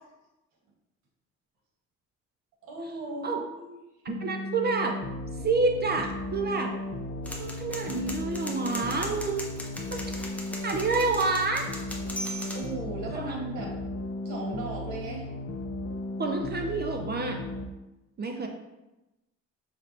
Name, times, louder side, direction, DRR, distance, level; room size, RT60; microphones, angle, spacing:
voice 1, 2.6-3.8 12.5-13.8 14.2-15.3 18.2-18.3, right 2 dB, 80° right, 0 dB, 1.3 m, -37 dB
sound 1, 4.1-17.6, left 1 dB, 45° left, 0.5 m, -36 dB
voice 2, 4.1-4.9 5.4-6.7 7.4-9.5 9.9-10.2 10.6-11.7 16.2-17.4 18.2-18.5, right 3 dB, 35° right, 3 dB, 0.5 m, -28 dB
sound 2, 7.3-12.7, equal, 5° left, 0.8 m, -39 dB
5.7 x 3.2 x 2.7 m, 0.99 s
cardioid pair, 90°, 30 cm